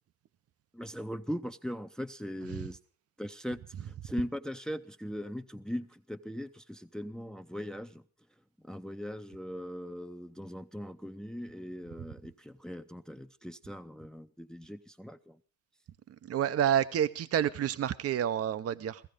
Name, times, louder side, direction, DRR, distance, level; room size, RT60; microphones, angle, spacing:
voice 1, 0.7-2.8 3.2-8.0 8.6-15.4, equal, ahead, 0.7 m, -40 dB
voice 2, 16.3-19.0, right 10 dB, 50° right, 0.7 m, -29 dB
16.0 x 14.5 x 5.1 m
cardioid pair, 90°, 30 cm